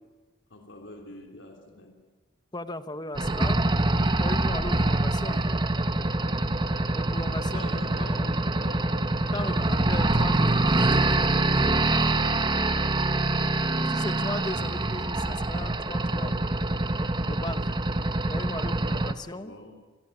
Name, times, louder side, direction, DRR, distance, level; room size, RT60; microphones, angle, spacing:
voice 1, 0.5-2.0 5.2-5.5 7.5-8.9 9.4-10.3 12.1-12.5 19.3-19.7, left 1 dB, 65° left, 3 dB, 3.5 m, -44 dB
voice 2, 2.5-3.6 4.2-5.4 6.9-7.7 9.3-10.6 13.9-16.4 17.2-17.7 18.3-19.5, left 2 dB, 20° left, 11 dB, 1.1 m, -37 dB
sound 1, 3.1-19.1, right 2 dB, 25° right, 1.1 m, -25 dB
27.5 x 20.5 x 9.1 m, 1.2 s
head